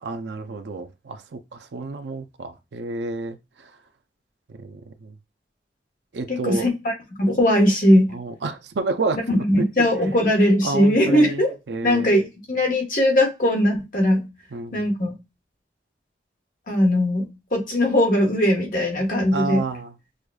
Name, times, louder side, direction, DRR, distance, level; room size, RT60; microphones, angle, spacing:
voice 1, 0.0-3.7 4.6-5.1 6.1-6.7 8.1-9.2 9.6-9.9 10.6-12.1 14.5-14.9 19.3-19.9, right 3 dB, 85° right, 0.5 m, -30 dB
voice 2, 6.3-6.9 7.2-8.1 9.3-11.5 11.8-14.3 14.7-15.1 16.7-19.6, left 1 dB, 50° left, 1.2 m, -19 dB
6.3 x 2.3 x 2.3 m
head